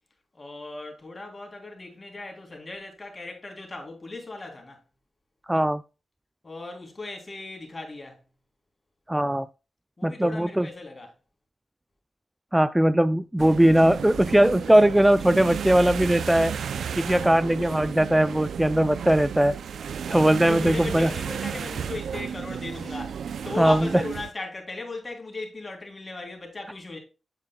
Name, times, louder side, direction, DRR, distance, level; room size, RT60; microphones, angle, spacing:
voice 1, 0.3-4.8 6.4-8.2 10.0-11.1 16.9-17.4 20.0-20.2 20.5-27.0, left 2 dB, 35° left, 3.2 m, -37 dB
voice 2, 5.5-5.8 9.1-9.5 10.0-10.7 12.5-16.6 17.0-19.5 20.1-21.1 23.6-23.9, right 1 dB, 10° right, 0.4 m, -20 dB
sound 1, 13.4-24.3, right 7 dB, 85° right, 0.4 m, -33 dB
9.0 x 7.3 x 2.3 m
cardioid pair, 65°, 0 cm